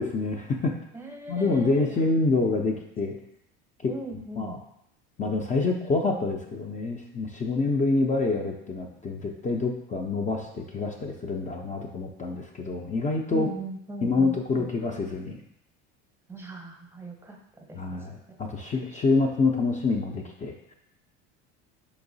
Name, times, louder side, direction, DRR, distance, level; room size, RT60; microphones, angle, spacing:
voice 1, 0.0-0.7 1.3-3.1 3.8-3.9 4.4-4.6 5.2-13.5 14.0-15.4 17.7-20.5, left 3 dB, 20° left, 2 dB, 0.4 m, -27 dB
voice 2, 0.9-2.0 3.9-4.6 13.3-14.7 16.3-17.4 17.7-18.4 18.7-18.8, right 2 dB, 5° right, 2 dB, 0.7 m, -39 dB
4.6 x 3.0 x 2.6 m, 0.78 s
hypercardioid pair, 80°, 35 cm